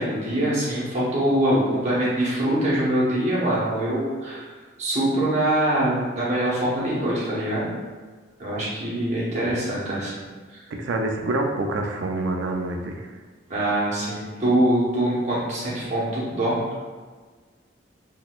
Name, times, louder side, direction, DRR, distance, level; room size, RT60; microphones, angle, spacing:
voice 1, 0.0-4.5 4.8-7.7 8.4-10.2 10.5-10.6 13.5-16.6, right 1 dB, 35° right, -8 dB, 1.0 m, -23 dB
voice 2, 10.8-13.1, right 2 dB, 70° right, 3 dB, 0.4 m, -26 dB
4.0 x 2.9 x 2.3 m, 1.4 s
head